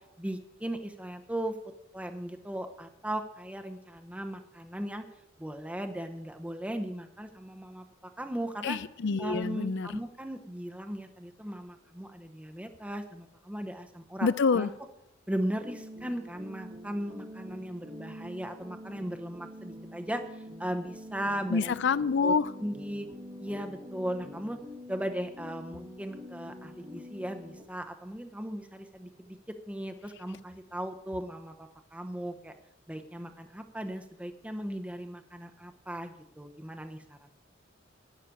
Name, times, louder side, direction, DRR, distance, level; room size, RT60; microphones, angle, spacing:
voice 1, 0.2-1.6 1.9-5.0 5.4-7.8 8.2-8.8 9.2-14.7 15.3-21.7 22.2-22.3 22.6-23.1 23.4-24.6 24.9-32.5 32.9-37.3, right 1 dB, 5° right, 5 dB, 0.8 m, -37 dB
voice 2, 8.6-10.0 14.2-14.7 21.5-22.5, left 5 dB, 60° left, 17 dB, 0.5 m, -27 dB
sound 1, 15.5-27.6, equal, 25° right, 1.3 m, -46 dB
11.5 x 6.6 x 8.7 m, 0.83 s
head